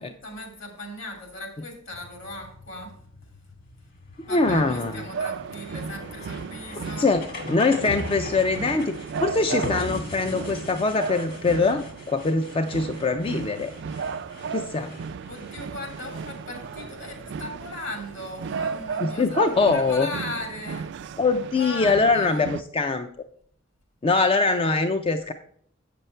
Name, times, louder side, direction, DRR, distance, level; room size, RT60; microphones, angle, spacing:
voice 1, 0.0-3.0 4.3-7.1 15.3-20.9 21.5-22.5, left 1 dB, 65° left, 3 dB, 2.9 m, -37 dB
sound 1, 1.9-19.9, left 2 dB, 45° left, 1.6 m, -41 dB
voice 2, 4.3-5.0 7.0-7.2 7.5-13.7 14.5-14.9 19.0-20.1 21.2-23.1 24.0-25.3, left 3 dB, 25° left, 8 dB, 0.4 m, -23 dB
sound 2, 4.4-22.6, right 6 dB, 60° right, 0.3 m, -35 dB
8.3 x 6.8 x 4.3 m, 0.63 s
head